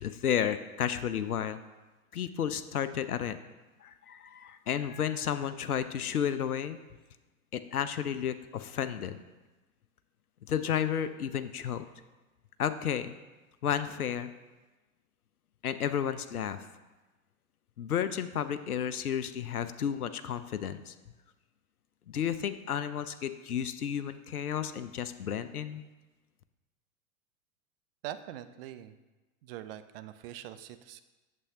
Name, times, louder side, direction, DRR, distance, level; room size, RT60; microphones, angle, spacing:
voice 1, 0.0-1.6 2.1-3.4 3.8-6.8 7.5-9.2 10.5-11.8 12.6-13.1 13.6-14.3 15.6-16.7 17.8-20.9 22.1-25.8, left 9 dB, 85° left, 12 dB, 0.5 m, -32 dB
voice 2, 28.0-28.9 29.4-31.0, right 12 dB, 45° right, 12 dB, 0.5 m, -43 dB
8.3 x 7.0 x 2.7 m, 1.2 s
figure-of-eight pair, 90°, 43 cm